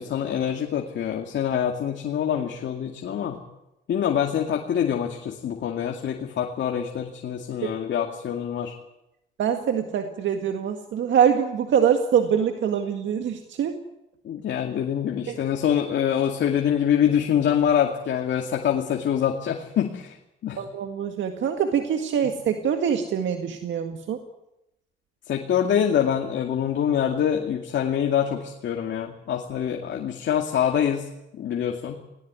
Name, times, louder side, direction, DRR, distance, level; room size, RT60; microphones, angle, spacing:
voice 1, 0.0-3.4 3.9-8.7 14.2-20.2 20.4-20.7 25.3-31.1 31.3-32.0, left 9 dB, 65° left, 2 dB, 2.3 m, -25 dB
voice 2, 9.4-13.8 15.3-15.4 20.6-24.2, right 8 dB, 70° right, 5 dB, 1.9 m, -24 dB
19.0 x 18.5 x 9.6 m, 0.89 s
cardioid pair, 90°, 20 cm